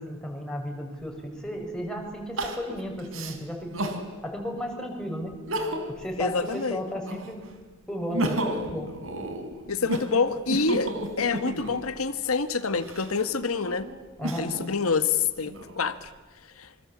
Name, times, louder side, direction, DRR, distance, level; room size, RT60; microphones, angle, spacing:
voice 1, 0.0-3.8 4.2-5.3 5.9-7.4 7.9-8.9 14.2-14.5, equal, 5° left, 0 dB, 6.4 m, -34 dB
Crying sobbing, 1.0-1.1 2.4-4.1 4.6-4.7 5.3-6.0 6.4-7.4 7.9-11.9 12.6-14.7 15.3-16.1, right 1 dB, 70° right, 4.0 m, -33 dB
voice 2, 6.2-6.8 9.7-13.9 14.4-16.1 16.6-16.7, left 5 dB, 85° left, 10 dB, 1.4 m, -27 dB
27.0 x 25.0 x 8.6 m, 1.3 s
head